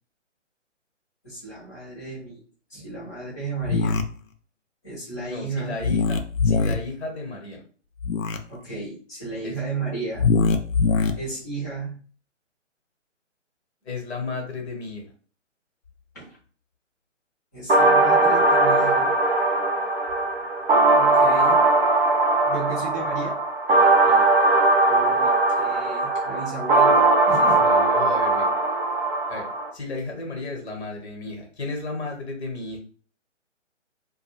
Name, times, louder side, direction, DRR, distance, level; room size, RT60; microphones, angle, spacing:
voice 1, 1.2-2.4 2.7-4.0 4.8-5.7 8.5-10.3 11.2-12.0 16.1-16.4 17.5-19.1 20.9-21.6 22.4-23.3 24.9-25.3 25.5-27.0 27.3-27.6, right 4 dB, 15° left, -7 dB, 0.7 m, -33 dB
sound 1, 3.6-4.0 5.8-6.7 8.0-8.4 10.2-11.1, left 4 dB, 90° left, 0.5 m, -21 dB
voice 2, 5.3-7.6 9.4-9.6 13.8-15.0 24.1-24.2 27.6-28.5 29.3-29.4 29.7-32.8, left 3 dB, 55° left, 1 dB, 1.1 m, -33 dB
sound 2, 17.7-29.7, right 2 dB, 45° right, 0.6 m, -19 dB
2.3 x 2.2 x 3.1 m, 0.41 s
figure-of-eight pair, 150°, 38 cm